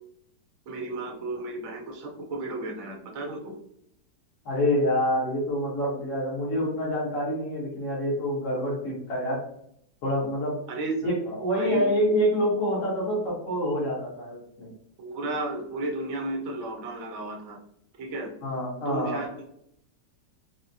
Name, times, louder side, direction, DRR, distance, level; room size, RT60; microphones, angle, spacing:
voice 1, 0.7-3.6 10.7-10.9 11.5-11.8 15.0-17.6 18.0-18.3 18.9-19.3, right 2 dB, 60° right, 1 dB, 0.9 m, -33 dB
voice 2, 4.4-9.4 10.0-10.6 11.0-14.7 18.4-19.2, equal, 50° left, -5 dB, 1.5 m, -26 dB
4.7 x 2.1 x 2.7 m, 0.71 s
omnidirectional pair, 1.9 m